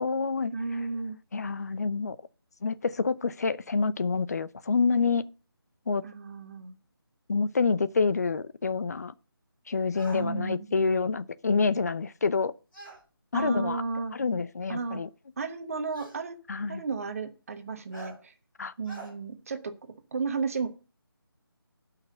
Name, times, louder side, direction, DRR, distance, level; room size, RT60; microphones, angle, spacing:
voice 1, 0.0-0.5 1.3-2.2 2.6-5.3 5.9-6.0 7.3-9.1 9.7-12.5 13.3-13.8 14.1-15.1 16.5-16.8 18.6-18.7, left 4 dB, 40° left, 0.6 m, -27 dB
voice 2, 0.5-1.2 6.0-6.8 10.1-10.7 13.3-14.2 14.7-15.0 15.4-16.4 16.7-18.3 18.8-19.7 20.1-20.7, right 4 dB, 35° right, 1.3 m, -33 dB
sound 1, 9.9-10.3 12.7-13.0 14.3-14.4 15.9-16.2 17.9-18.2 18.8-19.1, right 2 dB, 10° left, 3.9 m, -44 dB
11.5 x 5.8 x 6.6 m
figure-of-eight pair, 160°, 13 cm